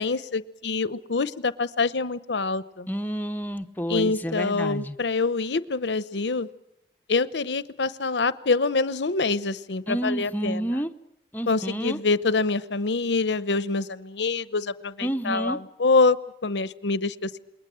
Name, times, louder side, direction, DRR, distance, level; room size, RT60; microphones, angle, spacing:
voice 1, 0.0-2.9 3.9-6.5 7.1-10.7 11.5-16.2 16.4-17.4, left 3 dB, 85° left, 16 dB, 0.9 m, -25 dB
voice 2, 2.9-5.0 9.9-10.9 11.3-12.0 15.0-15.6, equal, 10° left, 7 dB, 0.8 m, -29 dB
28.0 x 21.5 x 7.6 m, 0.83 s
head